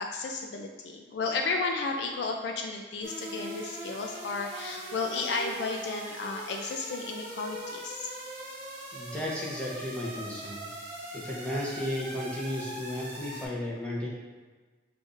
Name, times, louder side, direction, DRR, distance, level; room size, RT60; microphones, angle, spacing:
voice 1, 0.0-8.1, left 3 dB, 60° left, 3 dB, 0.3 m, -33 dB
sound 1, 3.0-13.5, right 1 dB, 35° right, 0.8 m, -41 dB
voice 2, 8.9-10.7 11.1-14.1, left 1 dB, 5° left, -5 dB, 0.7 m, -34 dB
6.5 x 2.5 x 2.5 m, 1.3 s
head